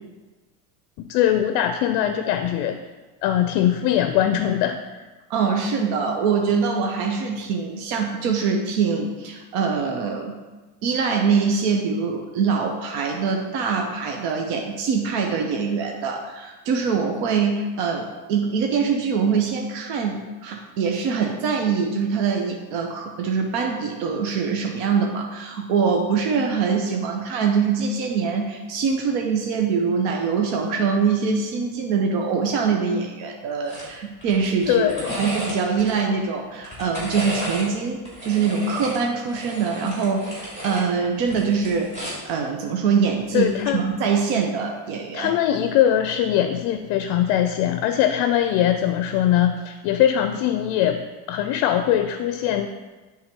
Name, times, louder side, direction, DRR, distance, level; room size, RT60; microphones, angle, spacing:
voice 1, 1.0-2.8 3.2-4.8 34.7-35.2 43.3-43.8 45.1-51.0 51.3-52.7, left 11 dB, 55° left, 8 dB, 0.5 m, -21 dB
voice 2, 5.3-10.4 10.8-45.3, right 5 dB, 65° right, 2 dB, 0.8 m, -23 dB
sound 1, 33.7-33.9 34.2-35.9 36.5-37.7 38.0-40.8 41.2-42.3 43.5-43.7, equal, 15° right, 2.3 m, -33 dB
9.1 x 3.6 x 4.4 m, 1.3 s
cardioid pair, 150°, 48 cm